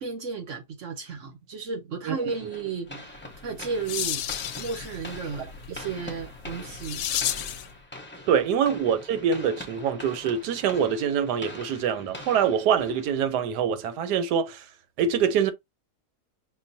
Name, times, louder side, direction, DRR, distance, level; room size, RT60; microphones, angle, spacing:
voice 1, 0.0-3.2 3.4-4.2 4.6-7.2, right 5 dB, 60° right, 1.0 m, -34 dB
sound 1, 2.3-13.6, left 1 dB, 10° left, 0.5 m, -44 dB
sound 2, 3.3-7.7, left 10 dB, 70° left, 0.9 m, -33 dB
voice 2, 8.3-14.6 15.0-15.5, right 7 dB, 90° right, 1.2 m, -24 dB
5.9 x 2.2 x 2.6 m
omnidirectional pair, 1.7 m